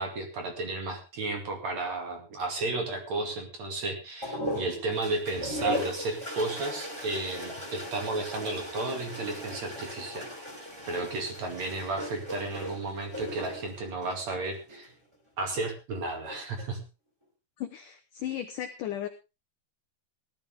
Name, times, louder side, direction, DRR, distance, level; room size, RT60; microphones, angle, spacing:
voice 1, 0.0-10.3 10.9-14.9 15.4-16.8, right 3 dB, 45° right, 4 dB, 3.3 m, -33 dB
sound 1, 4.2-14.9 16.1-16.6, left 1 dB, 5° right, 3.6 m, -38 dB
voice 2, 17.6-19.1, left 11 dB, 75° left, 7 dB, 1.9 m, -35 dB
18.0 x 12.0 x 3.5 m, 0.28 s
omnidirectional pair, 4.9 m